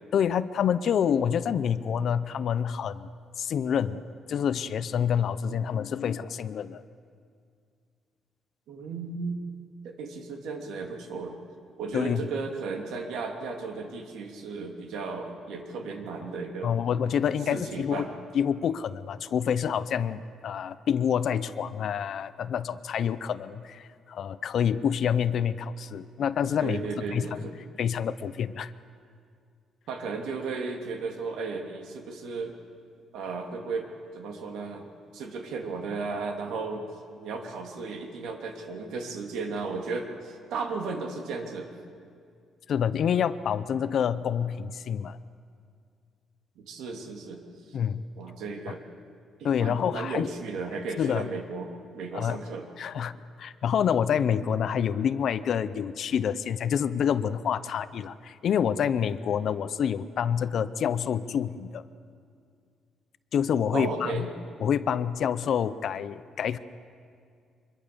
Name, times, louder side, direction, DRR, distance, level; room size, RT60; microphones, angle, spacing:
voice 1, 0.1-3.1 3.4-4.0 4.3-6.8 11.9-12.2 16.6-18.1 18.3-26.8 27.1-27.4 27.8-28.7 42.7-45.2 47.7-48.0 49.4-50.3 51.0-51.2 52.1-52.4 52.8-53.1 53.4-61.8 63.3-64.2 64.6-66.6, left 8 dB, 55° left, 14 dB, 0.7 m, -27 dB
voice 2, 8.7-9.4 9.8-11.4 11.8-16.7 17.5-18.1 26.6-27.7 29.9-32.5 33.1-33.9 34.1-36.9 37.2-41.7 46.6-47.4 47.7-47.8 48.2-48.8 49.4-52.7 59.4-59.6 63.7-64.3, right 4 dB, 85° right, 3 dB, 2.8 m, -35 dB
25.0 x 22.0 x 6.9 m, 2.3 s
cardioid pair, 150°, 0 cm